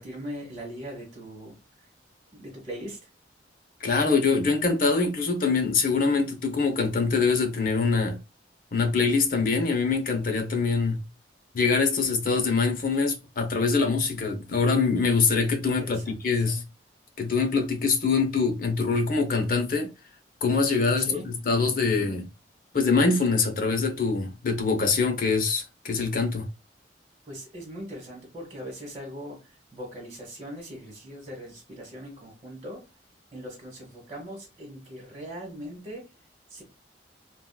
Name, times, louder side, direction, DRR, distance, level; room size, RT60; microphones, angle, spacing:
voice 1, 0.0-1.9 2.3-3.1 15.8-16.6 21.0-21.2 27.2-32.8 33.3-36.1 36.5-36.6, equal, 25° right, 1.1 m, -40 dB
voice 2, 3.8-8.2 8.7-11.0 11.5-16.6 17.2-19.9 20.4-22.3 22.7-26.5, left 4 dB, 50° left, 0.6 m, -24 dB
3.5 x 2.3 x 2.2 m
head